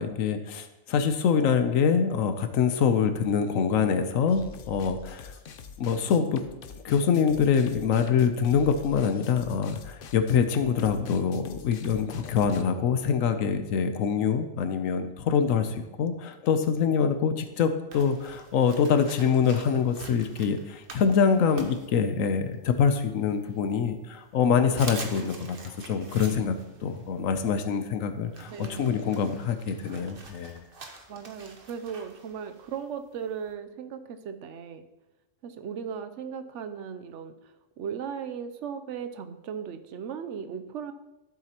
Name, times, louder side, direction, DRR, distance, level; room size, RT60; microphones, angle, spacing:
voice 1, 0.0-5.3 5.8-6.5 6.8-25.6 25.9-26.6 26.8-30.6, left 6 dB, 85° left, 9 dB, 1.1 m, -25 dB
sound 1, 4.3-12.6, left 6 dB, 55° left, 0.7 m, -45 dB
sound 2, 17.9-22.5 23.0-23.9 24.3-24.4 24.7-33.5, right 3 dB, 45° right, 1.1 m, -46 dB
voice 2, 28.5-29.0 31.1-34.8 35.4-37.3 37.8-40.9, right 7 dB, 70° right, 9 dB, 0.9 m, -37 dB
12.5 x 7.4 x 2.9 m, 1.0 s
omnidirectional pair, 1.3 m